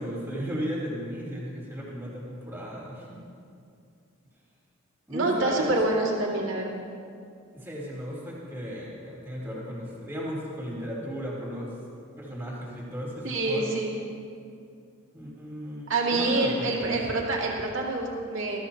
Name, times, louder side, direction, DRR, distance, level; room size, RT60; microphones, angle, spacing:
voice 1, 0.0-3.2 5.1-5.7 7.5-11.7 12.2-13.7 15.1-17.0, equal, 10° right, -6 dB, 3.5 m, -35 dB
voice 2, 5.1-6.8 13.2-13.9 15.9-18.6, right 2 dB, 65° right, -2 dB, 2.4 m, -26 dB
21.0 x 14.0 x 2.9 m, 2.4 s
head